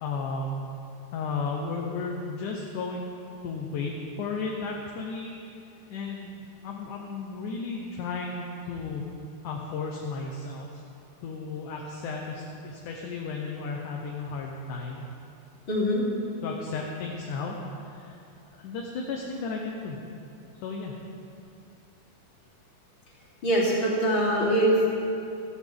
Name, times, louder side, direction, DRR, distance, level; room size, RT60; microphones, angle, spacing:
voice 1, 0.0-0.7 1.1-3.1 3.4-3.9 4.2-5.3 5.9-9.1 9.4-10.7 11.2-15.1 16.4-17.6 17.9-18.2 18.5-20.0 20.6-21.0, left 4 dB, 70° left, -1 dB, 2.2 m, -34 dB
voice 2, 15.7-16.0 23.4-24.9, right 1 dB, 35° left, -7 dB, 3.4 m, -23 dB
15.0 x 14.5 x 3.6 m, 2.7 s
omnidirectional pair, 4.2 m